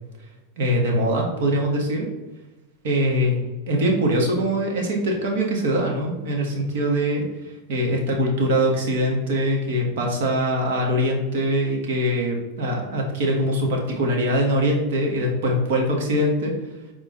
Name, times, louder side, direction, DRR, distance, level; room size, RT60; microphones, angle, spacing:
voice 1, 0.6-2.1 2.8-16.5, equal, 75° right, 0 dB, 1.6 m, -23 dB
8.4 x 3.7 x 3.9 m, 1.1 s
supercardioid pair, 140°, 0 cm